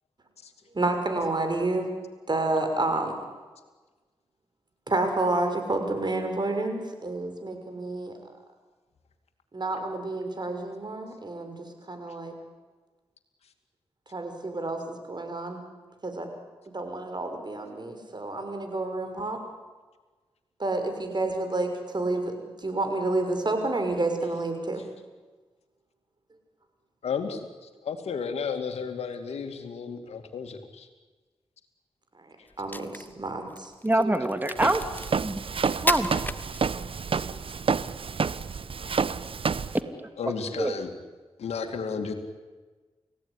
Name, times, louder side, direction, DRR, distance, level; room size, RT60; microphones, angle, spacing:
voice 1, 0.7-1.9 2.3-3.2 4.9-8.1 9.5-12.3 14.1-15.6 16.0-16.3 16.7-19.4 20.6-24.8 32.6-33.7, right 2 dB, 45° right, 6 dB, 6.1 m, -29 dB
voice 2, 27.0-30.9 32.4-32.5 35.9-36.0 37.1-37.4 40.2-40.9 41.4-42.1, left 6 dB, 90° left, 6 dB, 2.5 m, -33 dB
Crack, 32.5-37.1, left 1 dB, 20° left, 1.3 m, -35 dB
voice 3, 33.8-34.8 35.2-35.4 35.8-36.1 40.6-40.7, right 1 dB, 20° right, 8 dB, 2.4 m, -24 dB
Walk footsteps, 34.6-39.8, right 5 dB, 60° right, 0.9 m, -29 dB
30.0 x 16.5 x 9.9 m, 1.3 s
cardioid pair, 45°, 10 cm